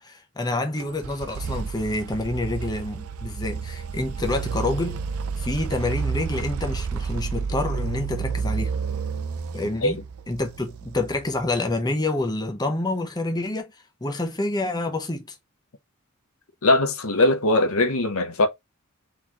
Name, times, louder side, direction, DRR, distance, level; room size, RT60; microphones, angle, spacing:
voice 1, 0.0-5.0 5.4-8.7 9.5-10.0 10.3-13.7 14.0-15.4, left 2 dB, 20° left, 0.9 m, -27 dB
sound 1, 0.8-11.6, right 5 dB, 90° right, 0.5 m, -31 dB
voice 2, 16.6-18.5, left 2 dB, 80° left, 1.0 m, -20 dB
4.0 x 3.9 x 3.0 m
head